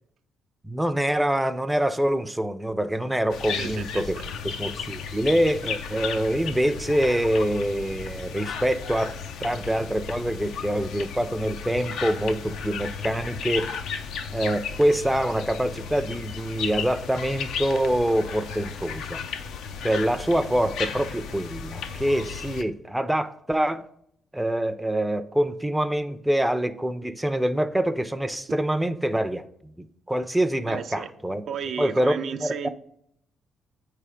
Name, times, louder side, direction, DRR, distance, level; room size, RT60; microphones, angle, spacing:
voice 1, 0.6-4.2 4.6-9.1 9.4-13.7 14.3-19.2 19.8-23.8 24.3-29.4 29.8-31.4 31.8-32.7, right 1 dB, 5° right, 0.4 m, -25 dB
sound 1, 3.3-22.6, left 6 dB, 80° left, 0.5 m, -34 dB
voice 2, 3.6-4.0 30.7-31.1 31.5-32.7, right 7 dB, 65° right, 0.4 m, -33 dB
8.2 x 3.3 x 4.9 m
cardioid pair, 90°, 0 cm